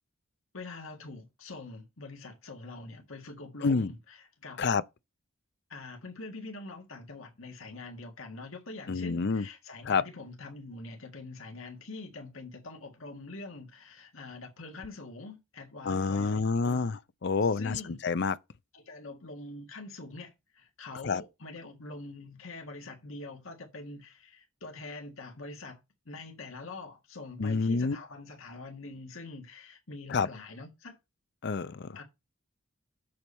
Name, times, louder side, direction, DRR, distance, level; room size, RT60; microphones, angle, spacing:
voice 1, 0.5-4.7 5.7-17.0 17.4-18.0 18.7-25.8 26.1-31.0 32.0-32.1, left 3 dB, 85° left, 1.7 m, -44 dB
voice 2, 3.6-3.9 4.6-4.8 8.9-9.4 9.9-10.0 15.8-18.4 21.0-21.2 27.4-28.0 30.1-30.3 31.4-32.0, left 4 dB, 55° left, 0.5 m, -28 dB
7.7 x 6.9 x 4.3 m
head